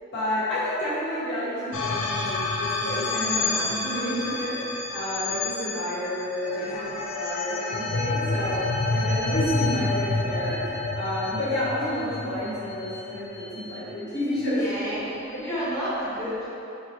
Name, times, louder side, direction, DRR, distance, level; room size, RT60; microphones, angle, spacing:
voice 1, 0.1-4.6 4.9-10.6 10.9-14.9 15.2-15.4, equal, 55° left, -9 dB, 1.2 m, -30 dB
sound 1, 1.7-14.2, left 3 dB, 70° left, 0.5 m, -29 dB
voice 2, 14.5-16.5, equal, 15° left, -11 dB, 1.1 m, -31 dB
4.0 x 3.0 x 3.1 m, 2.8 s
head